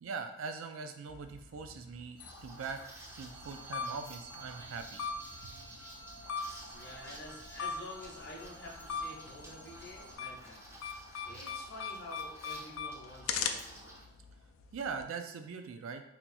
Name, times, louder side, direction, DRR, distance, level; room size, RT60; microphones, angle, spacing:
voice 1, 0.0-2.8 3.2-5.0 5.4-5.5 14.7-16.0, right 5 dB, 85° right, 7 dB, 0.4 m, -41 dB
sound 1, 1.1-15.0, left 6 dB, 85° left, 0.3 m, -42 dB
Liquid, 2.2-14.0, right 1 dB, 15° right, 0.4 m, -53 dB
sound 2, 2.2-10.2, right 2 dB, 60° right, 1.0 m, -53 dB
voice 2, 6.7-10.8 11.2-13.9, left 1 dB, 50° left, -3 dB, 0.7 m, -49 dB
2.9 x 2.2 x 4.1 m, 0.82 s
head